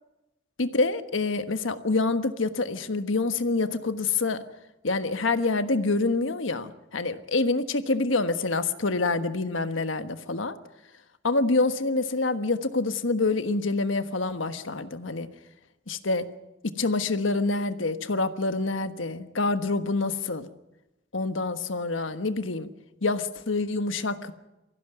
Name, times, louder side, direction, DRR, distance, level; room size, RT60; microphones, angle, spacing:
voice 1, 0.6-4.4 4.8-10.6 11.2-15.3 15.9-16.3 16.8-20.5 21.1-22.7 23.0-24.3, left 3 dB, 85° left, 9 dB, 1.4 m, -26 dB
23.5 x 15.5 x 9.3 m, 0.98 s
head